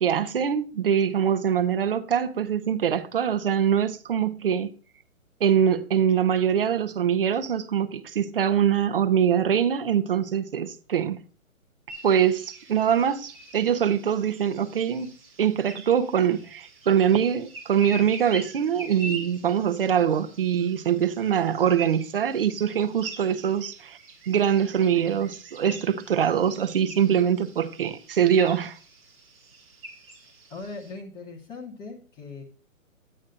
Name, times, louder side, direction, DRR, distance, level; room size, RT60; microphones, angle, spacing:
voice 1, 0.0-4.7 5.4-11.2 12.0-24.0 24.3-28.8, right 8 dB, 40° right, 0.9 m, -23 dB
sound 1, 11.9-30.9, right 2 dB, 15° right, 1.8 m, -45 dB
voice 2, 30.5-32.4, left 3 dB, 10° left, 1.3 m, -39 dB
9.9 x 8.4 x 2.5 m
hypercardioid pair, 160°, 42 cm